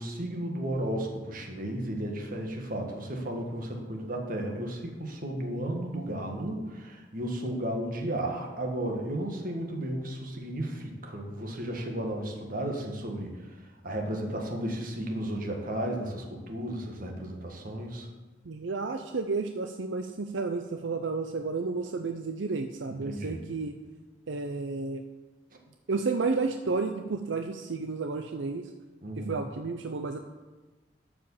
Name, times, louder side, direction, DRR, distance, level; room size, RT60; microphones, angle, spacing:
voice 1, 0.0-18.1 23.0-23.5 29.0-29.4, right 1 dB, 45° right, 2 dB, 1.8 m, -34 dB
voice 2, 18.5-23.8 24.3-25.0 25.9-28.7 29.2-30.2, right 4 dB, 75° right, 6 dB, 0.6 m, -31 dB
12.0 x 5.0 x 7.1 m, 1.2 s
head